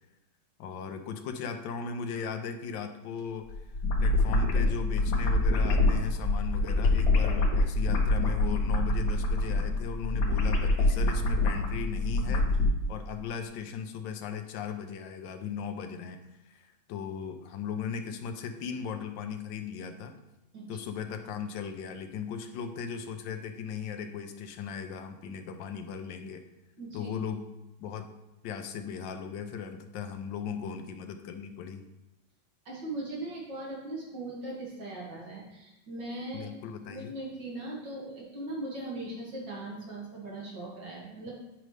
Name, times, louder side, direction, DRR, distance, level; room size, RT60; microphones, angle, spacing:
voice 1, 0.6-3.6 4.0-12.5 12.9-16.2 16.5-20.1 20.7-26.4 26.9-27.5 27.8-28.1 28.4-31.8 36.3-37.1, left 6 dB, 75° left, 6 dB, 1.3 m, -37 dB
sound 1, 3.5-12.7, left 2 dB, 55° left, 1.2 m, -25 dB
voice 2, 26.8-27.1 32.7-36.5 36.9-41.3, right 2 dB, 65° right, -4 dB, 2.6 m, -39 dB
8.6 x 5.2 x 3.2 m, 0.97 s
omnidirectional pair, 2.1 m